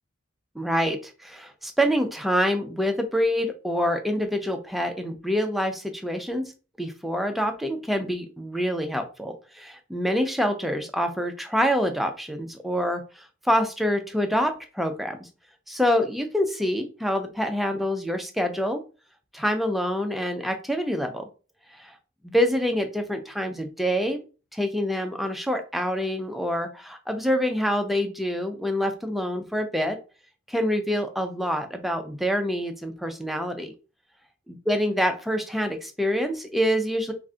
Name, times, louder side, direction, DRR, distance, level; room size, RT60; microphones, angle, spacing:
voice 1, 0.6-6.5 6.8-15.2 15.7-18.8 19.3-21.2 22.2-24.2 24.5-30.0 30.5-33.7 34.7-37.1, equal, ahead, 5 dB, 0.4 m, -26 dB
2.4 x 2.3 x 3.6 m, 0.34 s
head